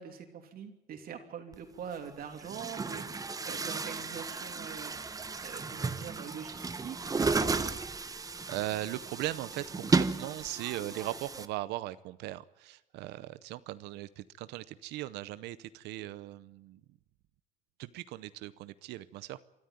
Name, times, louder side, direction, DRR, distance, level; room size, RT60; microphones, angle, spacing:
voice 1, 0.0-5.1 5.4-7.7, right 7 dB, 60° right, 5 dB, 3.0 m, -44 dB
Chatter / Gurgling / Tap, 1.5-1.6 2.3-11.5, right 4 dB, 20° right, 1.0 m, -34 dB
voice 2, 8.5-16.8 17.8-19.4, right 15 dB, 85° right, 15 dB, 0.8 m, -39 dB
24.5 x 13.0 x 9.2 m, 0.93 s
cardioid pair, 110°, 17 cm